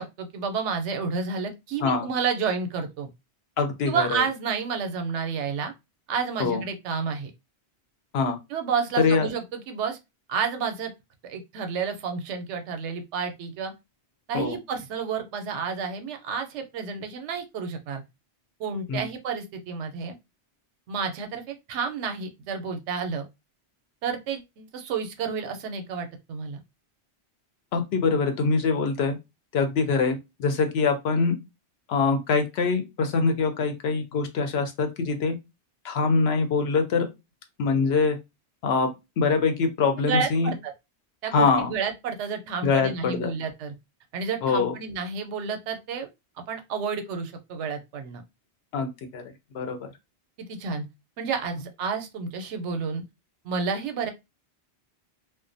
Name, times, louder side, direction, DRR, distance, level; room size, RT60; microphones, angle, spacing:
voice 1, 0.0-3.1 3.8-5.7 6.1-7.3 8.5-10.0 10.3-10.9 11.2-13.7 14.3-18.0 18.6-20.2 20.9-23.3 24.0-26.6 40.0-40.7 41.2-43.7 44.1-46.1 46.5-48.2 50.5-50.8 51.2-53.0 53.4-54.1, right 5 dB, 90° right, 6 dB, 0.9 m, -30 dB
voice 2, 3.6-4.3 6.4-6.6 8.1-8.4 9.0-9.3 14.3-14.6 18.9-19.1 27.7-29.2 29.5-31.4 31.9-35.4 35.8-37.1 37.6-38.2 38.6-40.5 41.3-41.7 42.6-43.3 44.4-44.7 48.7-49.2 49.5-49.9, left 4 dB, 70° left, 6 dB, 0.8 m, -24 dB
2.4 x 2.1 x 2.5 m, 0.23 s
omnidirectional pair, 1.1 m